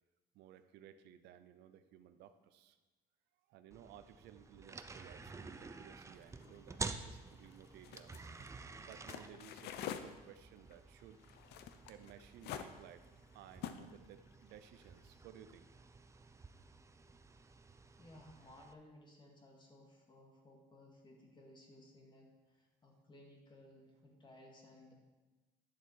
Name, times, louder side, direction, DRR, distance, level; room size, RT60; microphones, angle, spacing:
voice 1, 0.3-2.8 3.5-8.3 8.9-11.2 11.9-15.7, right 10 dB, 85° right, 11 dB, 0.6 m, -58 dB
sound 1, 3.7-18.7, right 4 dB, 15° right, 0.5 m, -51 dB
sound 2, 6.2-10.0 10.3-13.9 14.3-15.1, left 10 dB, 75° left, 0.7 m, -47 dB
voice 2, 18.0-24.9, left 1 dB, 25° left, 1 dB, 2.2 m, -59 dB
10.5 x 6.9 x 4.7 m, 1.2 s
cardioid pair, 110°, 17 cm